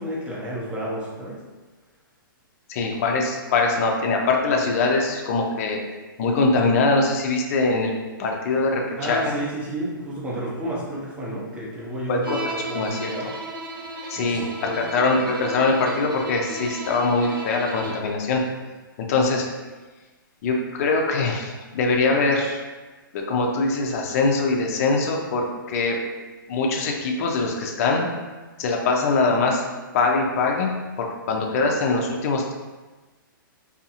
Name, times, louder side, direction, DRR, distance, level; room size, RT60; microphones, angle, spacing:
voice 1, 0.0-1.4 9.0-12.3 12.7-13.3 14.2-14.8, right 1 dB, 10° right, -6 dB, 0.5 m, -31 dB
voice 2, 2.7-5.8 6.2-7.9 8.2-9.2 12.1-13.1 14.1-18.4 19.0-19.5 20.4-22.6 23.1-26.0 26.5-28.1 28.6-29.6 29.9-30.7 31.0-32.5, left 3 dB, 45° left, 1 dB, 0.4 m, -22 dB
Bowed string instrument, 12.2-18.2, right 2 dB, 80° right, 0.5 m, -34 dB
2.6 x 2.4 x 2.7 m, 1.3 s
hypercardioid pair, 150°, 12 cm